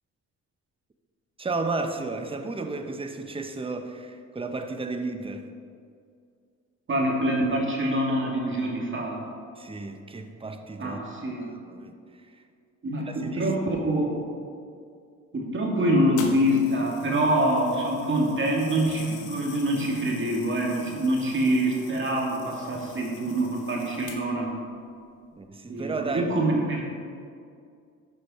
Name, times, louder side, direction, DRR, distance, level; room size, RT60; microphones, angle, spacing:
voice 1, 1.4-5.5 9.6-11.0 11.4-12.4 13.0-13.5 25.3-26.5, right 3 dB, 20° right, 6 dB, 0.8 m, -33 dB
voice 2, 6.9-9.3 10.8-11.5 12.8-14.1 15.3-24.5 25.7-26.8, right 1 dB, 40° right, -1 dB, 2.3 m, -25 dB
sound 1, 16.2-24.5 25.2-25.4, left 5 dB, 90° left, 1.1 m, -45 dB
13.0 x 5.4 x 4.3 m, 2.3 s
cardioid pair, 90°, 30 cm